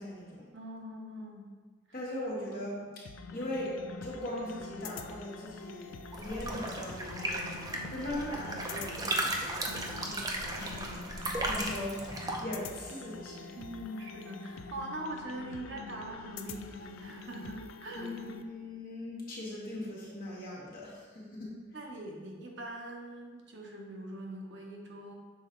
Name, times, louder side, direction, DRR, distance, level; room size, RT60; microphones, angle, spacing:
voice 1, 0.0-0.5 1.9-2.8 3.3-7.5 7.9-13.5 17.9-21.5, left 1 dB, 45° left, -5 dB, 1.5 m, -40 dB
voice 2, 0.5-1.5 2.4-2.6 13.5-18.1 21.7-25.1, right 1 dB, 60° right, 0 dB, 0.9 m, -42 dB
sound 1, 3.1-18.4, left 4 dB, 80° left, 0.4 m, -46 dB
sound 2, 6.1-12.4, right 1 dB, 20° right, 0.5 m, -35 dB
6.3 x 4.0 x 3.8 m, 1.4 s
head